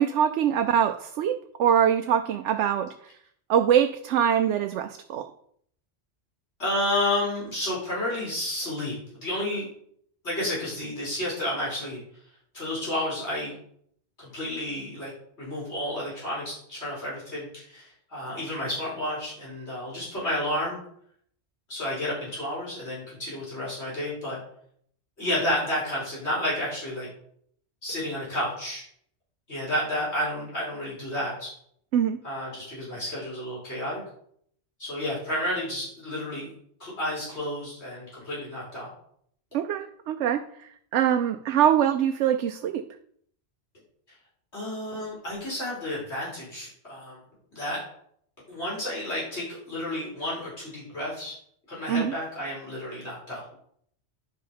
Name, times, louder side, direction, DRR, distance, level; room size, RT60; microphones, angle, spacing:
voice 1, 0.0-2.9 3.5-5.3 31.9-32.2 39.5-42.8 51.9-52.1, right 9 dB, 85° right, 7 dB, 0.9 m, -23 dB
voice 2, 6.6-9.0 9.2-9.7 10.2-12.0 12.5-13.5 14.2-15.1 15.4-20.8 21.7-24.4 25.2-27.1 27.8-28.8 29.5-31.5 32.2-34.0 34.8-36.5 36.8-38.9 44.5-47.2 47.5-47.8 48.5-51.3 51.7-53.4, left 1 dB, 70° left, -7 dB, 5.3 m, -31 dB
10.5 x 5.6 x 5.1 m, 0.65 s
omnidirectional pair, 1.2 m